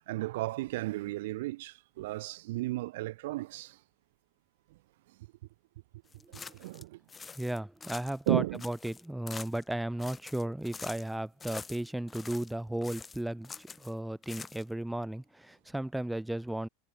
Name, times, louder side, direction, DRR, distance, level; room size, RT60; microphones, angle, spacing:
voice 1, 0.0-3.8 6.3-7.0 8.3-8.6, right 18 dB, 70° right, 0.4 m, -34 dB
sound 1, 6.1-6.8 7.1-8.3 8.5-9.7 10.0-11.1 11.4-12.5 12.8-13.9 14.2-14.8, left 5 dB, 15° left, 1.6 m, -46 dB
voice 2, 7.4-16.7, right 1 dB, 5° right, 0.7 m, -35 dB
hypercardioid pair, 115°, 0 cm